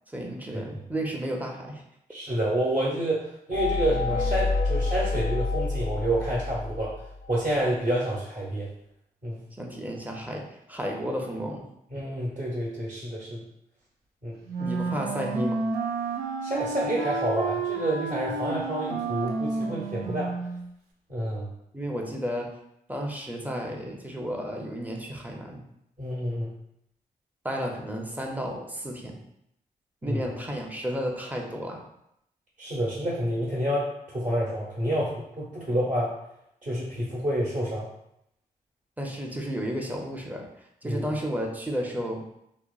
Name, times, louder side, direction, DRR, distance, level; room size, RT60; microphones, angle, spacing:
voice 1, 0.1-1.8 9.6-11.7 14.6-15.6 21.7-22.5 22.9-25.6 27.4-29.2 30.0-31.9 35.7-35.8 39.0-40.5 40.8-42.2, equal, 10° right, 0 dB, 0.6 m, -32 dB
voice 2, 2.1-7.0 7.3-8.7 9.2-9.4 11.9-13.4 14.2-14.4 16.4-20.3 21.1-21.5 26.0-26.5 30.0-30.2 32.6-36.1 36.6-37.9 40.8-41.1, right 1 dB, 50° right, -7 dB, 1.0 m, -28 dB
sound 1, 3.5-7.3, left 3 dB, 65° left, 0.6 m, -28 dB
Wind instrument woodwind instrument, 14.5-20.7, right 4 dB, 85° right, 0.4 m, -31 dB
2.8 x 2.1 x 2.3 m, 0.78 s
supercardioid pair, 45°, 17 cm